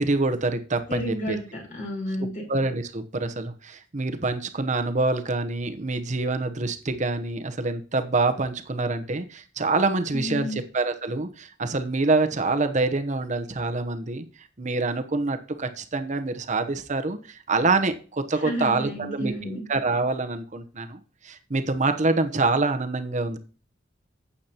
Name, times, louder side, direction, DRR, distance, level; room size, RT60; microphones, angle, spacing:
voice 1, 0.0-1.4 2.5-14.3 14.6-23.4, right 3 dB, 40° right, 8 dB, 0.9 m, -26 dB
voice 2, 0.9-2.4 10.1-10.6 18.4-19.6, equal, 45° left, -2 dB, 4.5 m, -31 dB
12.0 x 8.4 x 2.9 m, 0.38 s
head